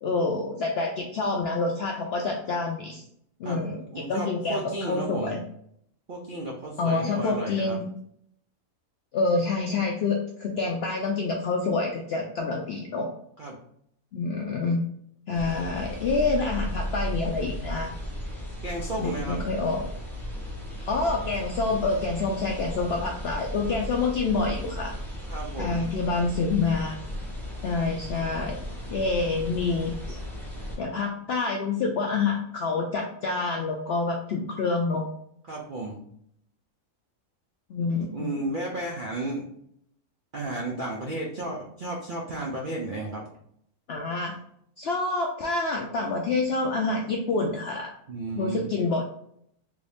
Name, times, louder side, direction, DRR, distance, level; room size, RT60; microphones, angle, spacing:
voice 1, 0.0-3.0 3.4-5.4 6.8-7.8 9.1-13.1 14.1-14.8 15.3-17.9 19.0-19.9 20.9-25.0 25.6-27.0 27.6-28.6 28.9-30.2 30.8-35.1 37.7-38.3 43.9-44.4 44.8-47.9 48.4-49.0, left 3 dB, 70° left, 0 dB, 0.6 m, -27 dB
voice 2, 3.9-5.4 6.1-7.8 13.4-13.6 18.6-19.5 25.3-25.9 35.5-36.0 38.1-39.4 40.3-43.3 48.1-48.7, right 2 dB, 65° right, -2 dB, 0.5 m, -33 dB
sound 1, 15.3-30.8, equal, ahead, 0.8 m, -35 dB
3.4 x 2.6 x 3.3 m, 0.70 s
omnidirectional pair, 1.5 m